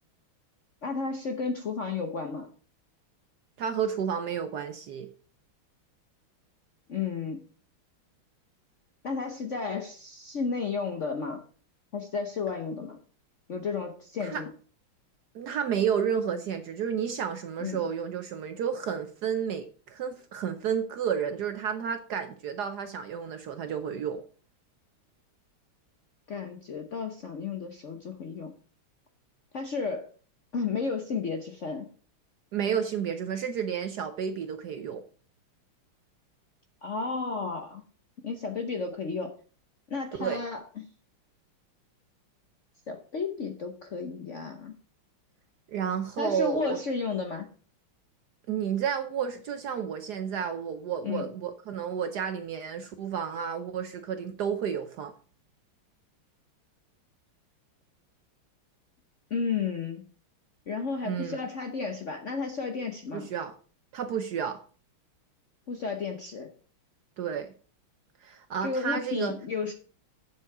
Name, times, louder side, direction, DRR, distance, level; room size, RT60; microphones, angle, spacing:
voice 1, 0.8-2.5 6.9-7.4 9.0-11.4 11.9-13.0 13.5-14.5 17.6-17.9 26.3-28.5 29.5-30.1 30.5-31.9 36.8-37.8 38.2-39.3 39.9-40.9 42.9-44.8 46.2-47.5 51.0-51.3 59.3-60.0 60.7-63.3 65.7-66.5 68.6-69.7, left 5 dB, 55° left, 4 dB, 0.8 m, -33 dB
voice 2, 3.6-5.1 14.2-14.4 15.3-24.2 32.5-35.0 40.2-40.4 45.7-46.8 48.5-55.1 61.0-61.4 63.1-63.5 63.9-64.6 67.2-67.5 68.2-69.3, right 7 dB, 65° right, 8 dB, 1.0 m, -31 dB
8.1 x 7.3 x 4.7 m, 0.42 s
omnidirectional pair, 2.3 m